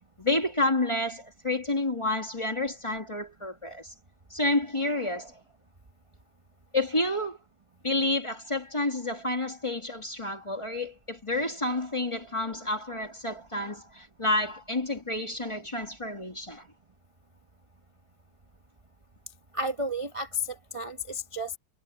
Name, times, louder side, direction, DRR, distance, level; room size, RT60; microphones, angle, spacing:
voice 1, 0.2-3.9 4.3-5.4 6.7-7.4 7.8-16.7, left 2 dB, 15° left, 1.3 m, -29 dB
voice 2, 19.5-21.6, left 1 dB, 25° right, 0.7 m, -32 dB
omnidirectional pair, 2.1 m